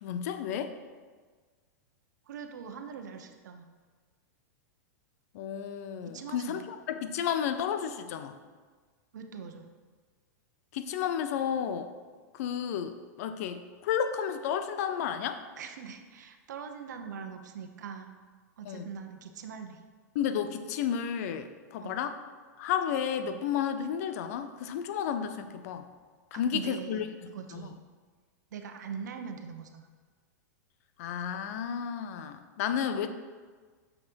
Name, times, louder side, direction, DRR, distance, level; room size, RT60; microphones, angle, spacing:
voice 1, 0.0-0.7 5.3-8.4 10.7-11.9 12.3-15.4 18.6-18.9 20.1-22.2 22.6-25.9 26.3-27.7 31.0-33.1, left 8 dB, 60° left, 9 dB, 0.7 m, -32 dB
voice 2, 2.3-3.7 6.0-6.7 9.1-9.7 15.6-18.1 18.6-19.8 21.8-22.0 26.3-27.8 28.5-29.9, right 6 dB, 80° right, 6 dB, 0.9 m, -42 dB
6.6 x 6.0 x 4.6 m, 1.5 s
hypercardioid pair, 135°, 9 cm